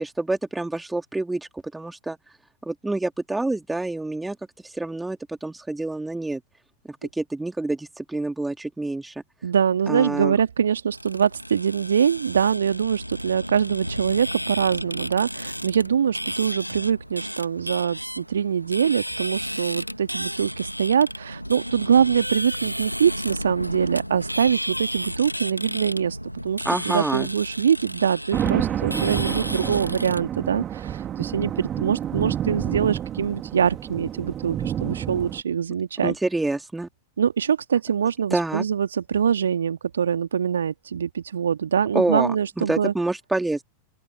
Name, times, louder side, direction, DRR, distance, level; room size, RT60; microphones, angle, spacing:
voice 1, 0.0-2.2 2.6-4.4 4.6-6.4 6.9-9.1 9.9-10.4 26.7-27.3 36.0-36.9 38.3-38.6 41.9-43.6, right 2 dB, 5° right, 3.5 m, -27 dB
voice 2, 9.4-26.2 26.4-36.1 37.2-42.9, right 7 dB, 70° right, 2.4 m, -23 dB
sound 1, 10.9-30.2, equal, 90° left, 2.4 m, -33 dB
sound 2, 28.3-35.4, right 10 dB, 25° right, 3.4 m, -29 dB
open air
figure-of-eight pair, 90°, 0 cm